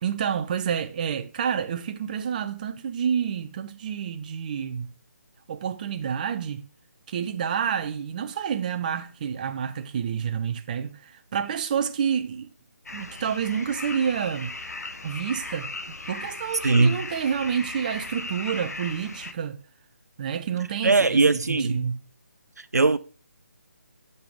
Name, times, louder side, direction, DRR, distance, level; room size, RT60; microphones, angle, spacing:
voice 1, 0.0-4.9 5.5-6.6 7.1-12.5 12.9-14.6 15.0-15.7 16.1-19.6 20.2-22.0, right 8 dB, 30° right, 0.5 m, -29 dB
sound 1, 12.9-19.3, left 2 dB, 80° left, 0.8 m, -37 dB
voice 2, 16.6-17.0 20.8-21.8 22.6-23.0, right 3 dB, 90° right, 0.5 m, -20 dB
6.6 x 5.4 x 3.2 m
figure-of-eight pair, 150°, 9 cm